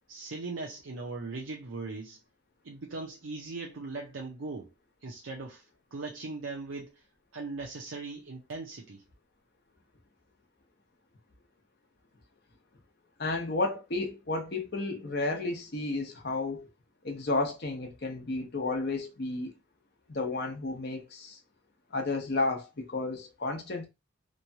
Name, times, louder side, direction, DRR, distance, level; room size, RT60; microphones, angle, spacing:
voice 1, 0.1-2.2 2.6-4.7 5.0-7.0 7.3-9.0, right 3 dB, 75° right, 0.6 m, -39 dB
voice 2, 13.2-16.7 17.0-19.5 20.1-21.4 21.9-23.9, left 3 dB, 50° left, 0.8 m, -32 dB
3.0 x 2.3 x 2.7 m
head